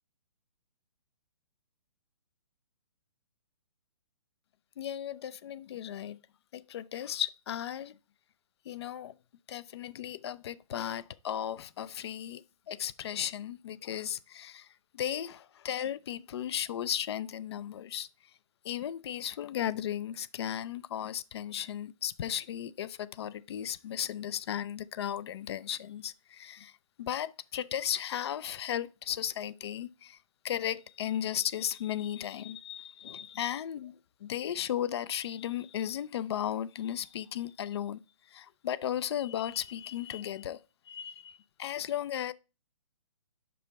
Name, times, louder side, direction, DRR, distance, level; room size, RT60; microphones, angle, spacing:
voice 1, 4.8-6.2 6.5-7.9 8.7-9.1 9.5-14.7 14.9-18.1 18.6-26.7 27.0-30.2 30.4-34.0 34.2-38.0 38.3-40.6 40.9-42.3, left 10 dB, 50° left, 0.4 m, -35 dB
5.4 x 5.2 x 4.1 m
hypercardioid pair, 145°, 17 cm